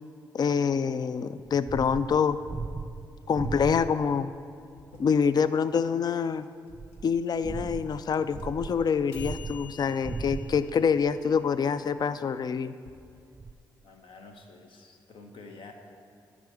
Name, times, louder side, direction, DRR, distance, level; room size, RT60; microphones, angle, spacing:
voice 1, 0.3-2.4 3.3-4.3 5.0-6.5 7.0-12.7, left 6 dB, 45° left, 14 dB, 0.4 m, -26 dB
sound 1, 1.4-4.2 6.7-10.9 11.5-11.6 13.4-13.5, right 4 dB, 30° right, 0.5 m, -38 dB
sound 2, 4.8-12.9, left 8 dB, 85° left, 0.9 m, -52 dB
voice 2, 13.8-15.7, left 3 dB, 65° left, 4 dB, 1.1 m, -49 dB
10.5 x 5.0 x 7.0 m, 2.4 s
hypercardioid pair, 40°, 9 cm